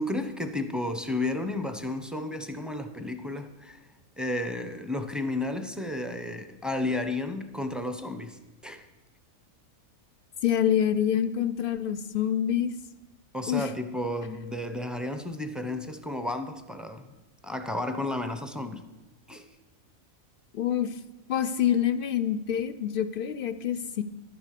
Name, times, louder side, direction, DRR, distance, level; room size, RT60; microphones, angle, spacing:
voice 1, 0.0-3.8 4.2-8.9 13.3-17.1 17.4-18.8 19.3-19.4, left 2 dB, ahead, 7 dB, 0.5 m, -32 dB
voice 2, 10.4-12.7 13.5-13.7 20.5-20.9 21.3-24.0, left 9 dB, 65° left, 13 dB, 0.5 m, -26 dB
11.0 x 9.6 x 6.6 m, 1.1 s
omnidirectional pair, 1.4 m